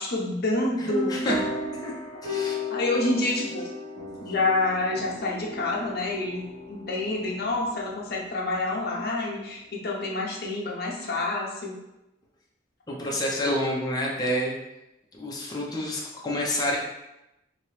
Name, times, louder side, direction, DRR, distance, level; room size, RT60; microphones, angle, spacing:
voice 1, 0.0-1.4 2.7-3.7 4.2-11.8, left 2 dB, 55° left, -2 dB, 0.7 m, -28 dB
sound 1, 0.9-9.0, left 2 dB, 40° right, 1.0 m, -35 dB
voice 2, 2.2-2.6 3.6-3.7 12.9-14.5 15.1-16.8, left 1 dB, 20° left, -3 dB, 0.6 m, -28 dB
3.0 x 2.9 x 3.1 m, 0.92 s
head